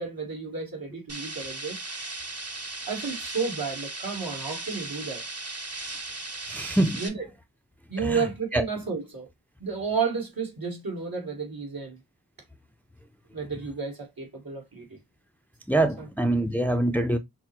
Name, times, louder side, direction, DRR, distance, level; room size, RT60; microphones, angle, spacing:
voice 1, 0.0-1.8 2.9-5.2 7.0-7.2 7.9-9.3 9.6-12.0 13.3-15.0, right 5 dB, 65° right, 2.0 m, -32 dB
sound 1, 1.1-7.1, right 2 dB, 40° right, 1.0 m, -37 dB
voice 2, 6.5-7.1 8.0-8.3 8.5-8.6 15.7-17.2, right 1 dB, 5° left, 0.5 m, -25 dB
5.8 x 2.2 x 2.9 m
wide cardioid pair, 45°, 38 cm